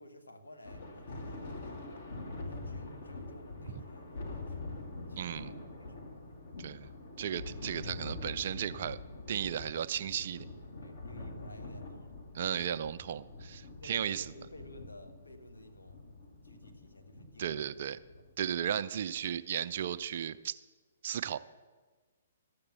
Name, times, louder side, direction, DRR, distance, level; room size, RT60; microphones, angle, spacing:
voice 1, 0.0-1.9 2.4-4.1 4.4-6.2 10.8-13.1 13.8-16.0 16.4-17.7 18.2-18.3, left 1 dB, 75° left, 5 dB, 1.3 m, -54 dB
Thunder, 0.6-18.3, left 2 dB, 55° left, 1.5 m, -45 dB
voice 2, 5.2-5.5 6.6-6.9 7.2-9.0 9.3-10.4 12.3-14.3 17.4-18.0 18.4-20.6 21.0-21.4, right 9 dB, 45° right, 12 dB, 0.4 m, -35 dB
13.0 x 6.7 x 7.1 m, 1.4 s
figure-of-eight pair, 120°, 0 cm